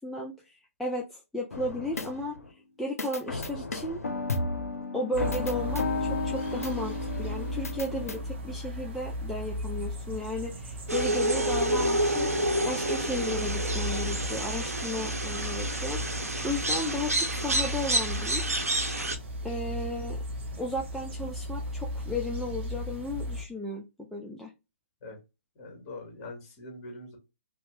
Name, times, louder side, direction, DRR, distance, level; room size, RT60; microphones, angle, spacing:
voice 1, 0.0-2.4 2.8-4.0 4.9-12.3 12.6-18.6 19.4-20.2 20.6-24.5, left 1 dB, ahead, -2 dB, 0.3 m, -34 dB
sound 1, 1.5-2.5 3.0-8.2, left 3 dB, 85° left, 0.5 m, -33 dB
sound 2, 5.1-23.5, equal, 45° right, 0.7 m, -36 dB
sound 3, 10.9-19.2, right 1 dB, 85° right, 0.6 m, -29 dB
voice 2, 25.5-27.2, left 2 dB, 30° left, 1 dB, 1.5 m, -43 dB
2.7 x 2.0 x 3.1 m, 0.26 s
figure-of-eight pair, 130°, 8 cm